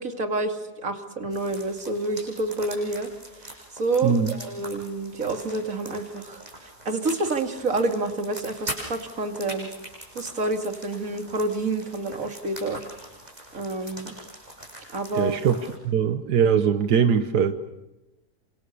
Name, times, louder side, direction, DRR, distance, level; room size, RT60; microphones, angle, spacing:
voice 1, 0.0-3.1 3.4-9.7 10.1-12.8 13.5-14.1 14.9-15.4, right 2 dB, 55° right, 5 dB, 3.0 m, -28 dB
sound 1, 1.3-15.8, right 1 dB, 25° right, 8.1 m, -42 dB
voice 2, 4.0-4.3 15.2-15.6 15.8-17.5, right 7 dB, 85° right, 8 dB, 1.8 m, -21 dB
29.5 x 27.0 x 6.9 m, 0.96 s
omnidirectional pair, 1.7 m